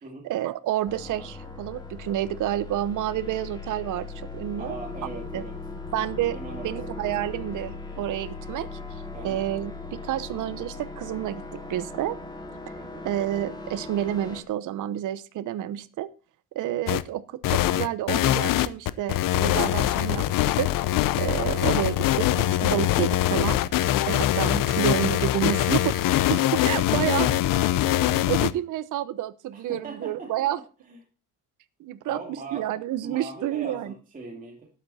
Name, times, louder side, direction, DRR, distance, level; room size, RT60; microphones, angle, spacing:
voice 1, 0.2-4.8 5.3-5.4 5.9-6.4 6.6-12.2 13.0-16.1 16.5-20.3 20.6-20.7 21.2-27.3 28.3-30.6 31.8-32.2 32.5-33.9, right 12 dB, 60° right, 13 dB, 0.9 m, -29 dB
sound 1, 0.8-14.4, left 3 dB, 10° left, 2.1 m, -38 dB
voice 2, 4.6-5.6 6.3-6.8 9.1-9.4 12.8-13.0 21.3-21.5 27.1-27.4 29.5-30.5 30.9-31.0 32.1-32.7 33.0-34.7, right 3 dB, 25° right, -1 dB, 2.5 m, -40 dB
sound 2, 16.9-17.0 17.4-28.5, left 14 dB, 65° left, 0.7 m, -23 dB
12.5 x 9.2 x 4.2 m, 0.35 s
cardioid pair, 150°, 35 cm